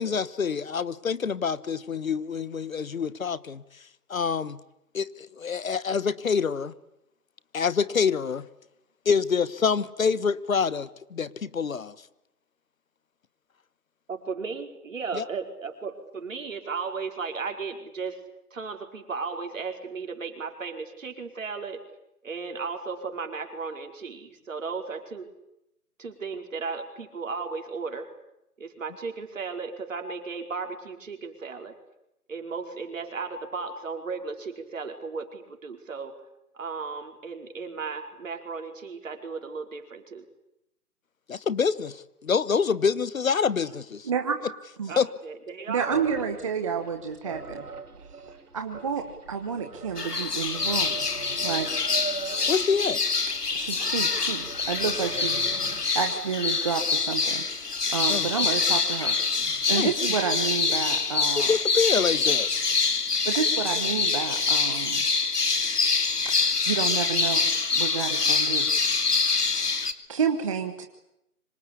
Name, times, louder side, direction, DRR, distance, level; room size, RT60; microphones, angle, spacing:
voice 1, 0.0-3.6 4.1-4.6 4.9-6.7 7.5-8.5 9.0-12.0 15.1-15.3 41.3-44.1 45.0-45.1 52.5-53.0 58.1-58.3 59.7-59.9 61.3-62.5, left 6 dB, 60° left, 1.3 m, -26 dB
voice 2, 14.1-18.2 18.5-21.8 22.2-25.3 26.0-28.1 28.6-31.7 32.3-36.1 36.5-40.2 44.9-45.9, right 4 dB, 55° right, 5.0 m, -35 dB
voice 3, 44.0-44.4 44.8-44.9 45.7-47.6 48.5-50.9 51.4-51.7 53.5-61.5 63.2-65.1 66.2-68.7 69.6-69.7 70.1-70.9, right 6 dB, 20° right, 1.2 m, -30 dB
sound 1, 45.9-55.8, right 4 dB, 70° right, 5.0 m, -41 dB
sound 2, 50.0-69.9, left 4 dB, 90° left, 2.7 m, -25 dB
27.0 x 25.5 x 8.5 m
hypercardioid pair, 165°, 46 cm